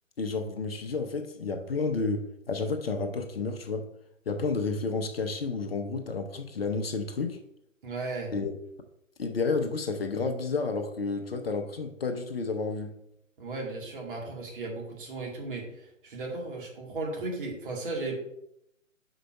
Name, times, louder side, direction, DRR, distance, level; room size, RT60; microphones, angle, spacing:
voice 1, 0.2-3.9 4.3-7.4 8.3-8.5 9.2-12.9, left 4 dB, 45° left, 6 dB, 0.8 m, -31 dB
voice 2, 7.8-8.3 13.4-18.2, right 2 dB, 40° right, -2 dB, 2.3 m, -35 dB
6.3 x 5.0 x 4.6 m, 0.78 s
figure-of-eight pair, 135°, 40 cm